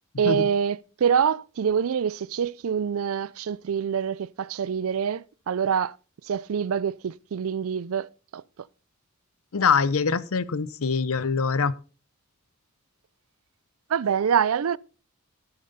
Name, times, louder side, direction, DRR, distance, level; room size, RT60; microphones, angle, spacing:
voice 1, 0.2-6.0 6.2-8.4 13.9-14.8, right 7 dB, 75° right, 0.4 m, -25 dB
voice 2, 9.5-11.7, left 5 dB, 75° left, 0.7 m, -24 dB
12.0 x 10.5 x 4.0 m
head